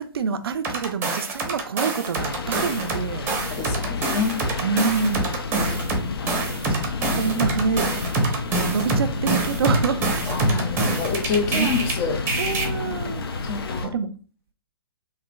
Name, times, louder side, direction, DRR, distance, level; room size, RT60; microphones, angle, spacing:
voice 1, 0.0-3.3 4.6-5.2 6.7-6.8 7.2-7.9 8.7-10.0 10.5-10.7 11.5-11.7 12.4-13.3 13.9-14.1, right 5 dB, 70° right, 0.4 m, -26 dB
sound 1, 0.6-3.0 3.3-11.9 12.3-12.6, right 3 dB, 15° right, 0.7 m, -25 dB
sound 2, 2.1-13.9, left 4 dB, 70° left, 0.5 m, -30 dB
voice 2, 3.5-4.4 4.7-4.8 10.3-12.2 13.4-13.9, left 5 dB, 20° left, 0.4 m, -27 dB
3.9 x 2.5 x 2.2 m
hypercardioid pair, 130°, 13 cm